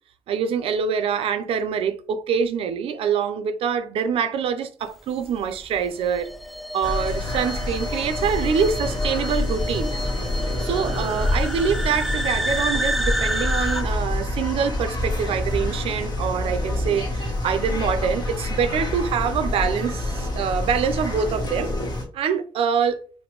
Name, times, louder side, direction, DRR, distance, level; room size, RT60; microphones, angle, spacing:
voice 1, 0.3-6.3 6.7-9.9 10.6-21.7 22.1-23.0, right 7 dB, 80° right, 0.5 m, -25 dB
sound 1, 5.3-13.8, equal, ahead, 0.4 m, -30 dB
sound 2, 6.8-22.0, left 1 dB, 50° left, 1.3 m, -27 dB
5.1 x 2.1 x 3.0 m
cardioid pair, 85°, 10 cm